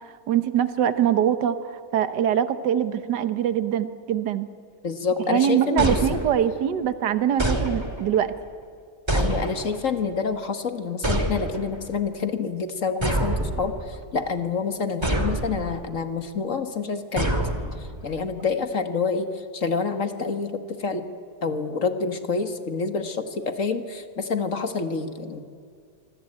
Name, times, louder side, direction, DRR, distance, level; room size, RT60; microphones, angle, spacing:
voice 1, 0.3-4.5 5.3-8.3, right 9 dB, 70° right, 11 dB, 1.7 m, -23 dB
voice 2, 4.8-6.2 9.1-17.5 17.8-21.1 21.4-25.4, left 5 dB, 45° left, 8 dB, 1.9 m, -28 dB
sound 1, 5.8-6.7 7.4-8.2 9.1-9.9 11.0-11.8 13.0-14.0 15.0-15.8 17.2-18.1, right 1 dB, 15° right, 2.5 m, -26 dB
26.0 x 25.0 x 8.8 m, 2.2 s
omnidirectional pair, 2.0 m